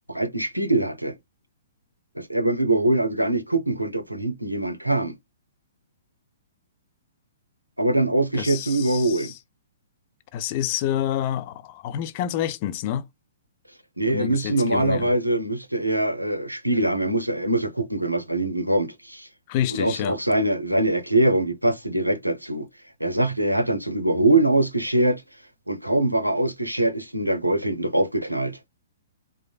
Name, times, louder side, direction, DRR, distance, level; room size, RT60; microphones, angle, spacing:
voice 1, 0.1-1.1 2.2-5.2 7.8-9.3 14.0-19.3 19.7-22.7 23.0-25.2 25.7-28.6, right 1 dB, 90° right, 0.6 m, -23 dB
voice 2, 8.3-9.4 10.3-13.1 14.1-15.1 19.5-20.2, left 11 dB, 35° left, 0.4 m, -28 dB
3.1 x 2.5 x 2.3 m
figure-of-eight pair, 115°, 0 cm